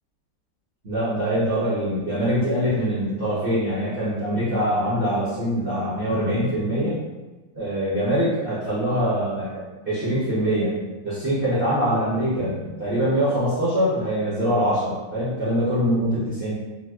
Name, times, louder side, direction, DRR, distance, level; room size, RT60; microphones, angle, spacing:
voice 1, 0.8-7.0 7.5-10.8 11.0-16.5, equal, 40° right, -12 dB, 0.8 m, -23 dB
3.9 x 2.2 x 2.4 m, 1.1 s
omnidirectional pair, 2.1 m